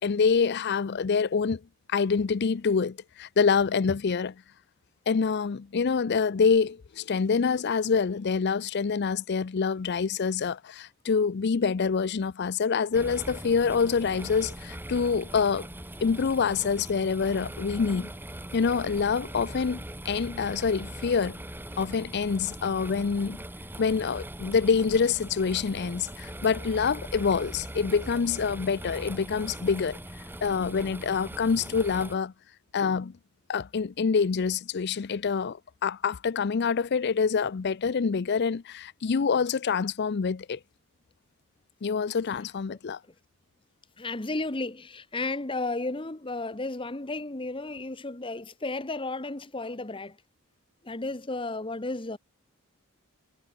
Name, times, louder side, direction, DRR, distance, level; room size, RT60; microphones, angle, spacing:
voice 1, 0.0-1.6 1.9-4.3 5.1-15.7 16.0-18.1 18.5-21.4 21.8-23.4 23.8-30.0 30.4-32.3 32.7-33.1 33.5-40.6 41.8-43.0, left 5 dB, 50° left, 0.5 m, -26 dB
sound 1, 12.9-32.2, right 1 dB, 10° right, 2.7 m, -41 dB
voice 2, 44.0-50.2 50.8-52.2, left 2 dB, 25° left, 1.1 m, -33 dB
head